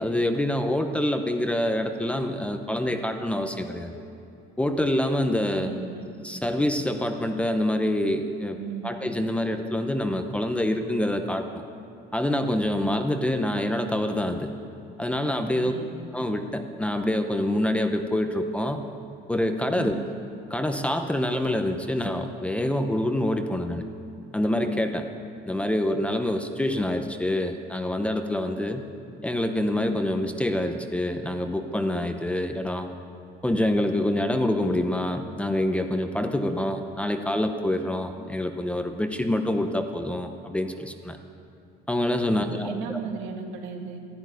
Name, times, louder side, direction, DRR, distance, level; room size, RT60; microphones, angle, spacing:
voice 1, 0.0-4.0 4.6-5.7 6.2-8.6 8.8-11.6 12.1-14.5 15.0-15.7 16.1-18.8 19.3-20.0 20.5-23.8 24.3-25.1 25.5-28.8 29.2-32.9 33.4-41.2 41.9-43.0, left 1 dB, 5° left, 6 dB, 0.7 m, -26 dB
voice 2, 5.6-6.1 8.5-9.0 15.4-15.9 19.7-20.0 42.3-44.0, right 7 dB, 80° right, 3 dB, 2.2 m, -36 dB
12.5 x 12.5 x 9.3 m, 2.7 s
cardioid pair, 160°, 20 cm